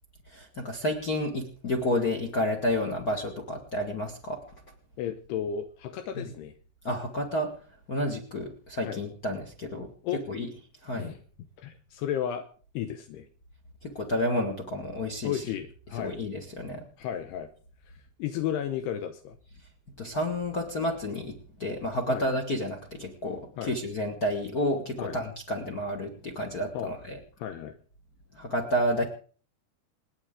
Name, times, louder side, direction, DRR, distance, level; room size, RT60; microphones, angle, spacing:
voice 1, 0.3-4.4 6.1-6.3 6.8-7.5 7.9-9.9 10.3-10.5 10.8-11.1 13.8-15.4 16.0-16.8 20.0-27.2 28.3-29.0, left 1 dB, 65° left, 3 dB, 0.9 m, -30 dB
voice 2, 5.0-6.6 8.8-9.0 10.0-10.2 11.0-11.2 11.6-12.5 12.7-13.3 15.2-16.2 17.0-17.5 17.9-18.0 18.2-19.4 22.1-22.3 23.6-23.7 25.0-25.2 26.7-26.9 27.4-27.7, left 9 dB, 80° left, 7 dB, 3.0 m, -33 dB
28.0 x 9.5 x 3.7 m, 0.41 s
omnidirectional pair, 4.8 m